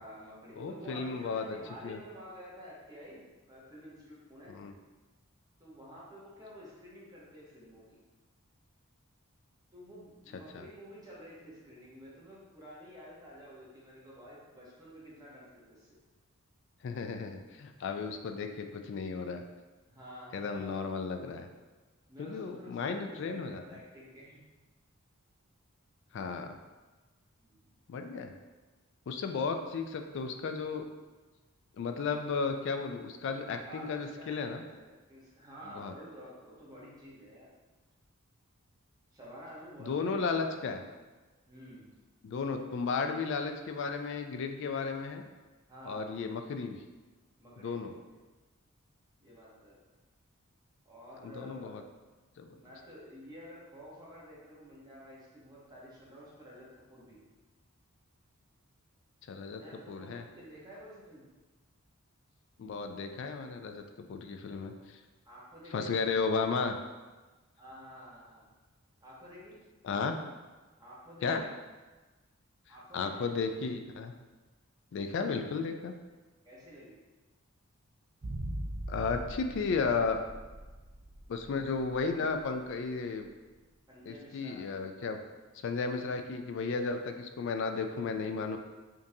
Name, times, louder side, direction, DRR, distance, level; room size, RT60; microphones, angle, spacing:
voice 1, 0.0-4.6 5.6-8.0 9.7-16.0 19.9-20.8 22.1-24.5 27.4-27.7 33.5-37.5 39.1-40.2 41.5-41.9 45.7-46.1 47.4-48.0 49.2-49.8 50.8-51.8 52.5-57.2 59.6-61.2 65.3-65.9 67.6-68.5 69.0-69.6 70.8-71.5 72.7-73.4 76.4-77.0 83.9-84.6, equal, 15° right, -7 dB, 0.9 m, -50 dB
voice 2, 0.6-1.4 1.8-2.0 4.5-4.7 10.5-10.7 16.8-19.4 20.3-21.5 22.2-23.6 26.1-26.6 27.9-28.3 29.1-30.8 31.8-34.6 35.7-35.9 39.8-40.8 42.2-45.2 45.8-46.8 47.6-47.9 51.2-51.8 52.4-52.6 59.3-59.6 59.9-60.2 62.6-63.8 64.1-65.0 65.7-66.8 69.8-70.2 71.2-71.4 72.9-74.1 74.9-75.9 78.9-80.2 81.3-83.3 84.1-85.2 85.6-88.6, left 4 dB, 55° left, 6 dB, 0.3 m, -34 dB
sound 1, 78.2-82.5 82.7-82.8, right 1 dB, 40° right, 0.5 m, -41 dB
5.2 x 2.6 x 2.7 m, 1.2 s
head